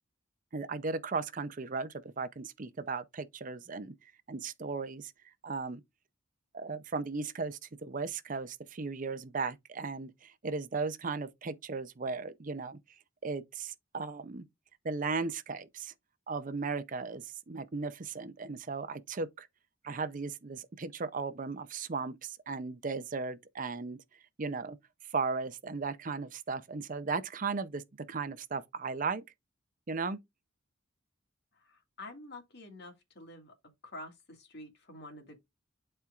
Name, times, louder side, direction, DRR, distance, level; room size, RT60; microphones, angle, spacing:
voice 1, 0.5-3.9 4.3-5.1 5.4-5.8 6.5-12.8 13.2-14.4 14.8-15.9 16.3-19.5 19.8-24.0 24.4-24.8 25.1-27.8 28.1-29.2 29.9-30.2, right 4 dB, 40° right, 0.6 m, -36 dB
voice 2, 31.6-33.5 33.8-35.4, left 1 dB, 55° left, 2.0 m, -48 dB
11.5 x 4.4 x 2.4 m
head